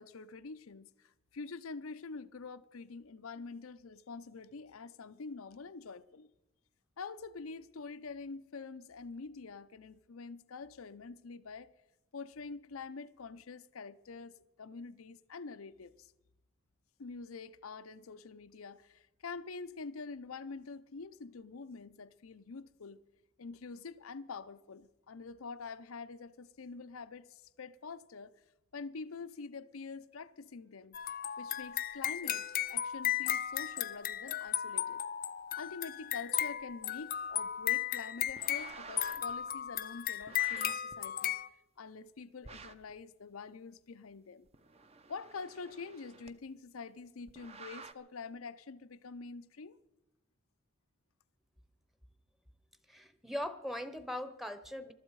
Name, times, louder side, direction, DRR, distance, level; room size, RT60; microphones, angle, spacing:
voice 1, 0.0-6.3 7.0-11.7 12.1-16.1 17.0-23.0 23.4-28.3 28.7-31.0 31.4-35.0 35.6-41.4 41.8-44.5 45.1-49.8, left 4 dB, 85° left, 0.7 m, -46 dB
sound 1, 30.9-41.5, left 11 dB, 45° left, 0.5 m, -35 dB
sound 2, 38.3-39.3 40.2-40.9 42.4-42.9 44.5-46.3 47.3-47.9, right 4 dB, 30° right, 0.7 m, -50 dB
voice 2, 52.9-54.9, left 1 dB, ahead, 0.9 m, -40 dB
22.0 x 12.5 x 4.7 m
head